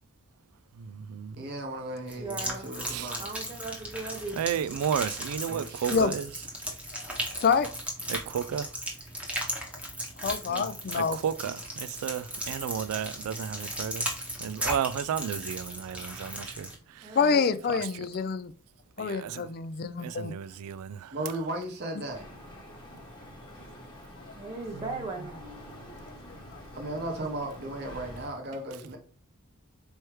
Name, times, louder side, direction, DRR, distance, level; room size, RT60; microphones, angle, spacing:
voice 1, 0.8-1.4 2.9-3.1 4.4-6.3 8.1-8.7 10.5-10.7 10.9-14.1 14.4-16.7 17.0-17.1 17.7-17.8 19.0-19.5 20.0-20.9 24.7-24.8, right 8 dB, 80° right, 0.3 m, -33 dB
voice 2, 1.4-3.2 5.5-6.1 21.1-22.3 26.7-29.0, right 1 dB, 45° right, 0.8 m, -36 dB
sound 1, 2.1-16.7, equal, 5° right, 0.9 m, -36 dB
voice 3, 2.2-2.7 3.2-4.4 17.0-17.8 24.3-25.4, right 3 dB, 20° right, 0.5 m, -38 dB
voice 4, 7.4-7.7 10.2-11.2 17.1-18.5 19.0-20.3 26.5-26.6, left 5 dB, 45° left, 0.3 m, -27 dB
sound 2, 22.1-28.3, left 1 dB, 20° left, 1.1 m, -46 dB
4.6 x 3.2 x 3.1 m
head